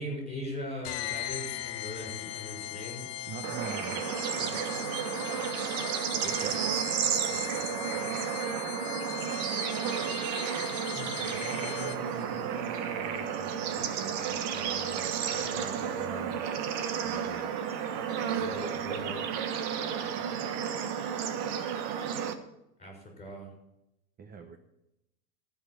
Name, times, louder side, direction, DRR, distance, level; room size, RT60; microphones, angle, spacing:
voice 1, 0.0-3.3 4.4-4.7 7.3-7.7 7.9-8.4 10.9-16.4 17.0-17.4 18.4-19.4 20.2-20.5 22.8-23.5, left 1 dB, 15° left, 0 dB, 6.2 m, -43 dB
sound 1, 0.8-12.2, left 15 dB, 30° left, 0.6 m, -39 dB
voice 2, 3.3-4.2 6.2-6.7 24.2-24.6, right 6 dB, 20° right, 7 dB, 0.8 m, -41 dB
Bird / Insect / Frog, 3.4-22.3, right 8 dB, 50° right, 1.4 m, -32 dB
14.5 x 5.6 x 8.3 m, 0.86 s
hypercardioid pair, 120°, 49 cm